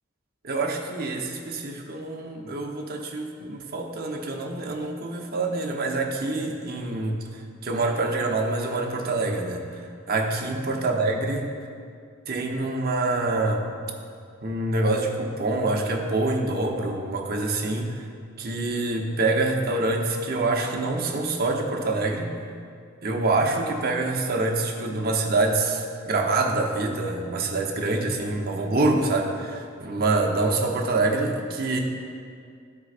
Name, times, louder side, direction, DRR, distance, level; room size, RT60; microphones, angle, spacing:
voice 1, 0.4-9.7 10.1-11.4 12.3-13.7 14.4-18.0 18.4-22.4 23.0-31.8, right 2 dB, 45° right, 1 dB, 0.8 m, -26 dB
13.5 x 4.7 x 2.5 m, 2.3 s
head